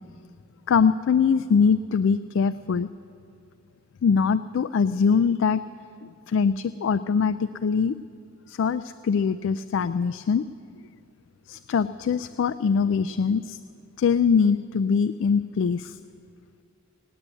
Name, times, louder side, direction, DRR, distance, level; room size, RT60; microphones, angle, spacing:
voice 1, 0.7-2.9 4.0-5.6 6.0-7.9 8.5-10.4 11.5-13.6 14.0-16.0, left 6 dB, 60° left, 12 dB, 0.3 m, -23 dB
18.5 x 9.7 x 8.1 m, 2.4 s
head